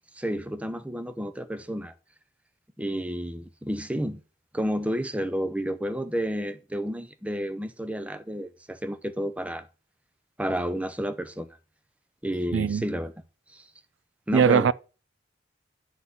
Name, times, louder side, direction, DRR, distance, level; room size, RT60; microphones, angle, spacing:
voice 1, 0.1-1.9 2.8-4.2 4.5-9.7 10.4-11.5 12.2-13.1 13.5-13.6 14.3-14.7, equal, 5° right, 0.5 m, -31 dB
voice 2, 12.5-12.8 14.3-14.7, right 7 dB, 80° right, 0.4 m, -20 dB
9.5 x 4.1 x 5.7 m
head